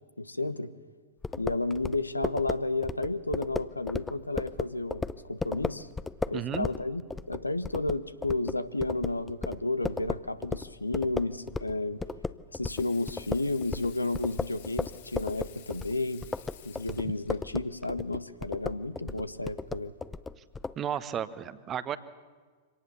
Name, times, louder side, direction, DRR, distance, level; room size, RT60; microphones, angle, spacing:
voice 1, 0.2-0.7 1.3-5.9 6.3-12.0 12.5-16.2 16.6-19.9, left 2 dB, 90° left, 13 dB, 0.9 m, -32 dB
sound 1, 1.2-11.8 12.0-20.8, left 4 dB, 10° left, 0.6 m, -35 dB
voice 2, 6.3-6.7 20.8-22.0, right 9 dB, 30° right, 14 dB, 1.1 m, -33 dB
Water tap faucet / Sink (filling or washing), 12.7-17.4 18.9-19.0, left 10 dB, 60° left, 2.7 m, -53 dB
25.0 x 18.5 x 7.1 m, 1.5 s
figure-of-eight pair, 95°, 0 cm